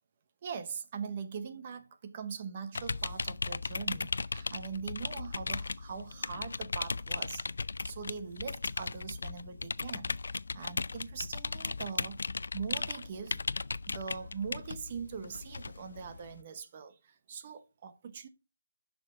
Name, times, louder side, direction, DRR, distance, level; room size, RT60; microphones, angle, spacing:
voice 1, 0.4-7.5 7.8-10.1 10.5-12.2 12.5-13.6 13.9-18.3, right 6 dB, 25° right, 0.9 m, -41 dB
sound 1, 2.8-16.4, left 4 dB, 65° left, 0.4 m, -37 dB
10.5 x 6.1 x 3.7 m
hypercardioid pair, 175°, 0 cm